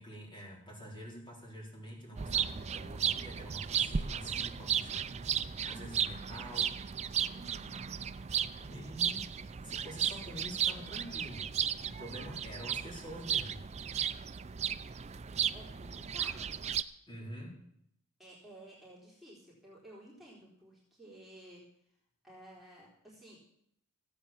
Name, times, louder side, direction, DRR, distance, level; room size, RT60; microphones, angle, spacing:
voice 1, 0.0-5.3 5.6-6.7 8.6-9.2 9.6-11.5 11.8-13.6 17.1-17.5, equal, 20° left, -3 dB, 4.3 m, -47 dB
sound 1, 2.2-16.8, right 8 dB, 30° right, 0.4 m, -35 dB
voice 2, 5.7-6.1 7.3-7.7 12.1-12.4 15.5-16.6 18.2-21.6 22.2-23.4, right 1 dB, ahead, -6 dB, 3.7 m, -54 dB
15.0 x 8.7 x 7.2 m, 0.71 s
head